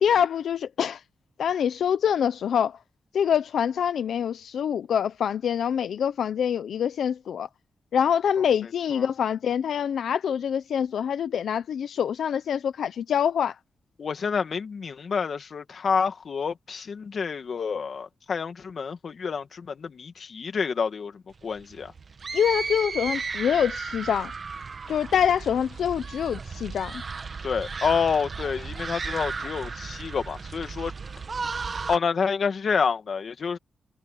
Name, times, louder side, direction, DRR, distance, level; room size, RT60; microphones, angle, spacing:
voice 1, 0.0-1.0 1.4-2.8 3.1-7.5 7.9-13.6 22.3-24.3 24.9-27.0, left 8 dB, 85° left, 0.7 m, -25 dB
voice 2, 8.6-9.1 14.0-21.9 27.4-30.9 31.9-33.6, left 6 dB, 55° left, 2.0 m, -28 dB
sound 1, 21.4-32.0, right 4 dB, 40° right, 1.6 m, -35 dB
wide cardioid pair, 135°, 0 cm